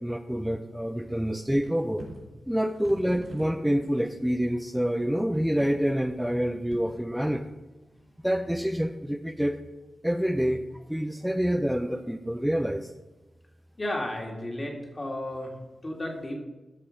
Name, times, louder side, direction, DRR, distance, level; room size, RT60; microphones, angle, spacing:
voice 1, 0.0-2.1 2.5-7.5 8.2-9.6 10.0-10.6 10.9-12.9, equal, 5° right, 7 dB, 0.4 m, -27 dB
sound 1, 1.3-1.4 1.6-2.3 2.8-4.1 4.6-4.7 5.6-5.9 6.7-7.1, right 2 dB, 80° right, 3.3 m, -43 dB
voice 2, 13.8-15.5 15.8-16.4, left 1 dB, 30° left, 0 dB, 2.1 m, -33 dB
13.0 x 4.4 x 5.1 m, 1.1 s
wide cardioid pair, 85°, 0 cm